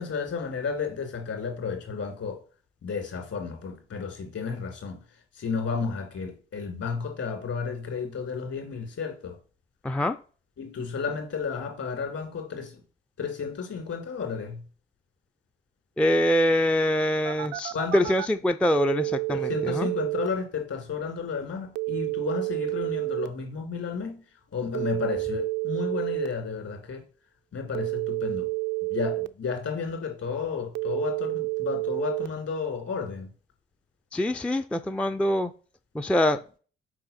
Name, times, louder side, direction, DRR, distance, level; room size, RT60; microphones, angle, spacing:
voice 1, 0.0-2.4 2.8-5.0 5.3-9.4 10.6-12.8 13.2-14.6 17.7-18.1 19.3-24.2 24.5-27.0 27.5-28.5 28.9-33.3, left 5 dB, 55° left, 3 dB, 2.5 m, -32 dB
voice 2, 9.8-10.2 16.0-19.9 34.1-35.5 35.9-36.4, left 1 dB, 5° left, 7 dB, 0.4 m, -24 dB
Telephone, 17.3-18.3 18.8-20.3 21.8-23.3 24.7-26.3 27.7-29.3 30.8-32.3, right 27 dB, 70° right, 0.4 m, -29 dB
6.0 x 4.6 x 4.2 m, 0.39 s
figure-of-eight pair, 45°, 29 cm